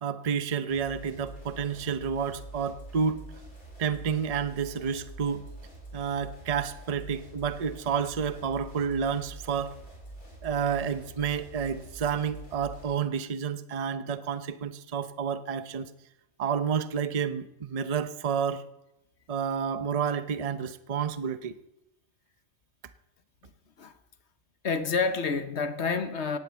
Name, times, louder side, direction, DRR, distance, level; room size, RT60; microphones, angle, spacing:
voice 1, 0.0-3.2 3.8-5.5 5.9-9.7 10.4-15.9 16.4-18.6 19.3-21.5, right 7 dB, 35° right, 0.7 m, -30 dB
sound 1, 0.7-12.9, right 2 dB, 45° left, 5.5 m, -46 dB
voice 2, 24.6-26.4, left 4 dB, 60° left, 1.3 m, -28 dB
17.0 x 9.4 x 8.4 m
omnidirectional pair, 1.3 m